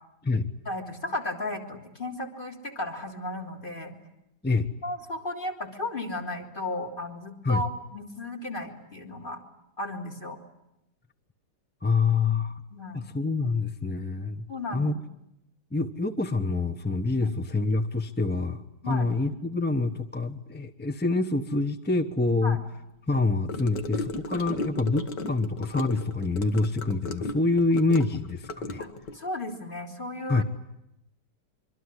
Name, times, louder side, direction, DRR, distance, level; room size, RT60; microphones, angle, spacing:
voice 1, 0.6-3.9 4.8-9.4 9.8-10.4 12.7-13.1 14.5-14.9 17.2-17.3 18.8-19.1 22.4-22.6 28.8-30.4, left 1 dB, 25° left, 6 dB, 3.5 m, -34 dB
voice 2, 11.8-12.6 12.9-15.0 15.7-22.6 23.1-28.8 30.3-30.4, left 3 dB, 10° left, 8 dB, 0.7 m, -26 dB
Gurgling / Car passing by / Sink (filling or washing), 23.5-29.2, left 2 dB, 70° left, 2.3 m, -35 dB
25.0 x 24.5 x 9.9 m, 0.86 s
omnidirectional pair, 1.9 m